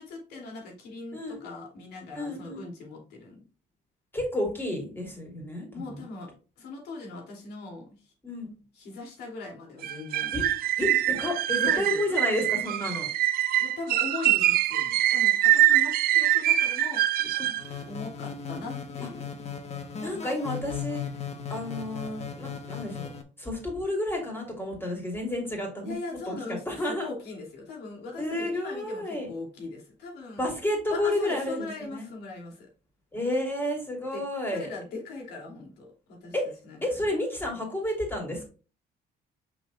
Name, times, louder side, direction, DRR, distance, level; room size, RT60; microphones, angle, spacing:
voice 1, 0.0-3.4 5.7-6.3 6.6-8.1 8.7-10.3 11.5-12.5 13.6-17.0 17.9-19.3 25.8-30.5 30.9-32.7 34.1-36.3 36.6-37.0, left 3 dB, 75° left, 0 dB, 2.9 m, -40 dB
voice 2, 1.1-1.4 2.1-2.6 4.1-6.0 8.2-8.5 10.3-10.4 10.8-13.1 17.4-17.6 20.0-21.0 21.5-23.1 23.4-25.9 26.3-26.4 26.7-27.1 28.2-29.3 30.4-32.1 33.1-34.7 36.3-36.5 36.8-38.5, left 1 dB, 15° left, 0 dB, 3.2 m, -31 dB
sound 1, 9.8-17.7, right 13 dB, 60° right, 0.5 m, -24 dB
sound 2, 17.6-23.2, left 7 dB, 40° left, 1.1 m, -37 dB
6.5 x 5.8 x 2.4 m, 0.35 s
cardioid pair, 110°, 17 cm